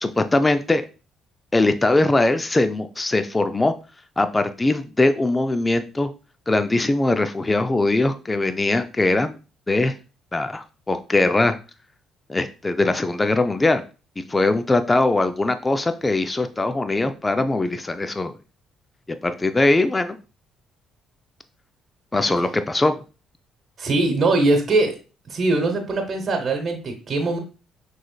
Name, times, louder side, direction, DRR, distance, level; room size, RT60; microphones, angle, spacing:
voice 1, 0.0-0.8 1.5-3.7 4.2-6.1 6.5-9.3 9.7-9.9 10.3-11.5 12.3-13.8 14.2-18.3 19.2-20.2 22.1-23.0, left 2 dB, 20° left, 9 dB, 0.4 m, -21 dB
voice 2, 23.8-25.0 25.3-27.4, right 2 dB, 45° right, 3 dB, 1.1 m, -21 dB
6.2 x 3.2 x 2.3 m, 0.33 s
supercardioid pair, 70°, 0 cm